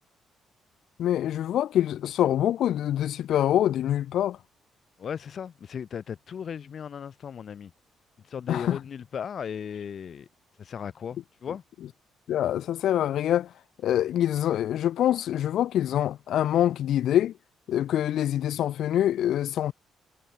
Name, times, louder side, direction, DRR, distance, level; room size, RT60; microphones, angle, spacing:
voice 1, 1.0-4.4 8.5-8.8 12.3-13.5 13.8-17.3 17.7-19.7, left 11 dB, 75° left, 0.4 m, -25 dB
voice 2, 5.0-7.7 8.2-10.3 10.6-11.6, left 7 dB, 55° left, 0.8 m, -36 dB
cardioid pair, 90°, 0 cm